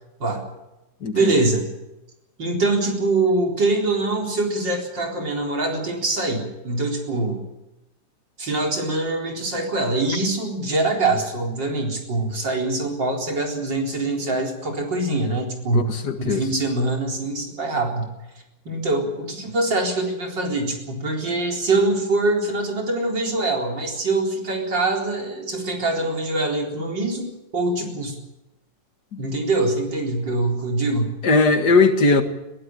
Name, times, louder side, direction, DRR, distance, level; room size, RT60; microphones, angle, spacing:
voice 1, 1.1-1.7 2.4-7.4 8.4-16.0 16.2-18.1 18.6-28.2 29.2-31.1, right 2 dB, 80° right, 1 dB, 4.8 m, -24 dB
voice 2, 15.7-16.4 31.2-32.2, left 3 dB, 65° left, 7 dB, 2.4 m, -18 dB
21.5 x 16.5 x 9.0 m, 0.96 s
omnidirectional pair, 1.9 m